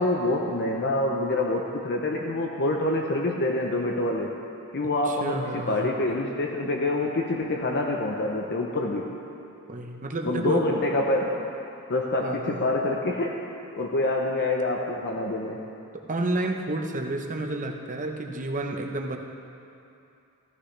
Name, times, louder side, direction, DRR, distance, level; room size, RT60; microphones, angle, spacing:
voice 1, 0.0-4.4 4.7-9.1 10.2-11.5 11.9-13.5 13.8-15.6, left 2 dB, 50° left, 0 dB, 0.8 m, -26 dB
voice 2, 5.0-5.9 9.7-10.6 12.2-12.7 15.9-19.2, right 2 dB, 35° right, 3 dB, 0.9 m, -30 dB
15.0 x 14.5 x 3.3 m, 2.7 s
head